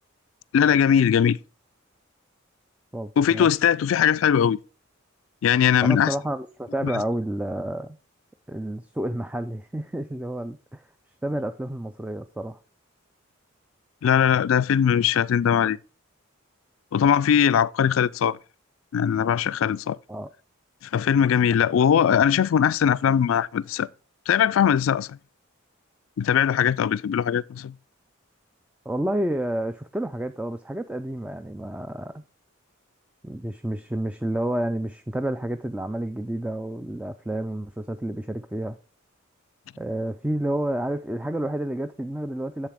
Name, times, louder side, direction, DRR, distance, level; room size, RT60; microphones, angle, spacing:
voice 1, 0.5-1.4 3.2-4.6 5.4-6.1 14.0-15.8 16.9-18.4 18.9-20.0 20.9-23.9 24.3-25.2 26.2-27.7, left 8 dB, 70° left, 0.3 m, -20 dB
voice 2, 2.9-3.5 5.8-8.0 8.5-10.8 11.2-12.6 20.1-20.3 28.9-32.2 33.2-38.8 39.8-42.7, right 1 dB, 5° right, 0.3 m, -30 dB
7.5 x 7.3 x 3.5 m
head